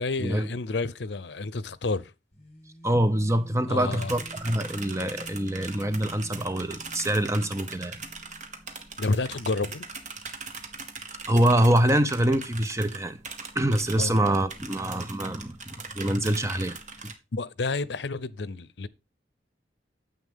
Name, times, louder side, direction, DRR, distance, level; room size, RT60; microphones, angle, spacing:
voice 1, 0.0-2.1 3.7-4.1 9.0-9.9 14.0-14.2 17.3-18.9, left 3 dB, 70° left, 0.7 m, -30 dB
sound 1, 2.3-9.0, equal, 40° left, 4.3 m, -47 dB
voice 2, 2.8-8.0 11.3-13.2 13.5-17.1, right 1 dB, 15° right, 0.6 m, -25 dB
sound 2, 3.9-17.1, right 4 dB, 45° right, 1.5 m, -41 dB
9.6 x 8.0 x 3.6 m
head